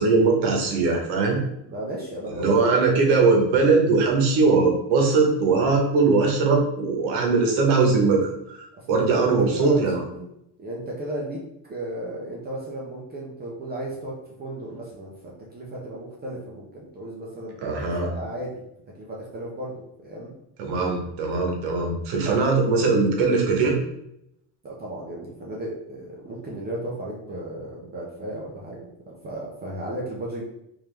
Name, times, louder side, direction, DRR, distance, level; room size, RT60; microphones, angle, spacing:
voice 1, 0.0-1.4 2.3-10.0 17.6-18.1 20.6-23.8, right 4 dB, 80° right, 1 dB, 1.1 m, -20 dB
voice 2, 1.7-2.9 8.8-8.9 9.1-10.3 10.6-18.6 19.0-20.3 22.2-22.6 24.6-28.9 29.2-30.4, right 1 dB, 20° right, -4 dB, 0.4 m, -34 dB
3.6 x 2.9 x 3.2 m, 0.79 s
cardioid pair, 175°, 48 cm